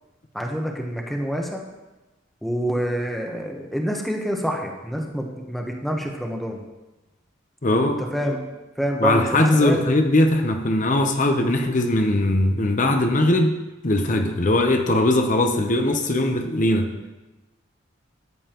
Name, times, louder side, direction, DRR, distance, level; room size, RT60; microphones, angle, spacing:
voice 1, 0.3-1.7 2.4-6.6 8.1-8.4 8.8-9.8 12.8-12.9, equal, ahead, 1 dB, 1.0 m, -27 dB
voice 2, 7.6-8.0 9.0-13.5 13.8-16.9, left 1 dB, 40° left, 5 dB, 0.8 m, -20 dB
13.5 x 9.6 x 3.0 m, 1.1 s
head